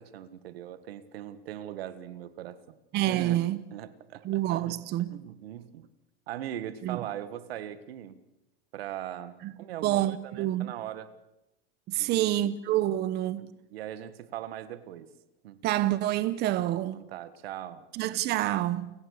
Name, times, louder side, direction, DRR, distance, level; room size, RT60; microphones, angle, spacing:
voice 1, 0.0-2.8 3.1-3.4 3.7-4.8 5.1-5.9 6.3-8.2 8.7-11.1 12.0-12.4 13.4-15.1 15.4-15.6 16.9-17.9 18.1-18.2, right 11 dB, 85° right, 1.8 m, -40 dB
voice 2, 2.9-3.6 4.2-5.2 6.8-7.0 9.4-9.5 9.8-10.7 11.9-13.5 15.6-17.0 17.9-18.9, right 14 dB, 35° right, 1.0 m, -27 dB
29.5 x 16.5 x 6.6 m
supercardioid pair, 145°, 29 cm